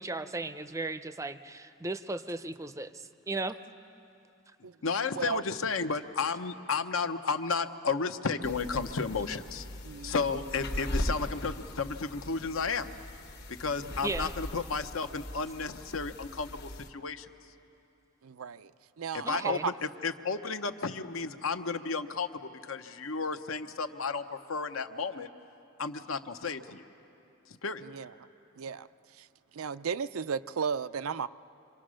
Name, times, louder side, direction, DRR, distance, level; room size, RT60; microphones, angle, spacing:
voice 1, 0.0-3.6 14.0-14.3 19.2-19.6, right 2 dB, 15° right, 11 dB, 0.5 m, -36 dB
voice 2, 4.8-9.7 10.0-12.9 13.5-17.3 19.1-25.3 25.8-26.9 27.5-27.8, left 4 dB, 75° left, 9 dB, 0.9 m, -33 dB
sound 1, 8.4-16.9, left 1 dB, 55° left, 1.2 m, -39 dB
voice 3, 18.2-18.7 19.0-19.7 27.8-28.1 28.6-28.9 29.2-29.3 29.5-31.3, right 6 dB, 90° right, 13 dB, 0.5 m, -34 dB
27.0 x 25.0 x 6.3 m, 2.7 s
head